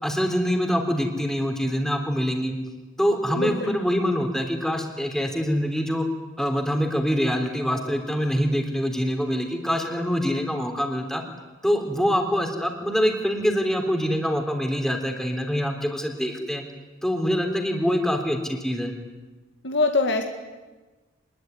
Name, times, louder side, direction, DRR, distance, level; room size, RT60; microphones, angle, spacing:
voice 1, 0.0-2.5 3.0-6.1 6.4-11.2 11.6-16.6 17.0-18.9, equal, 5° left, 4 dB, 3.6 m, -25 dB
voice 2, 3.4-3.8 19.6-20.2, left 3 dB, 65° left, 4 dB, 2.1 m, -23 dB
25.5 x 21.0 x 9.7 m, 1.2 s
head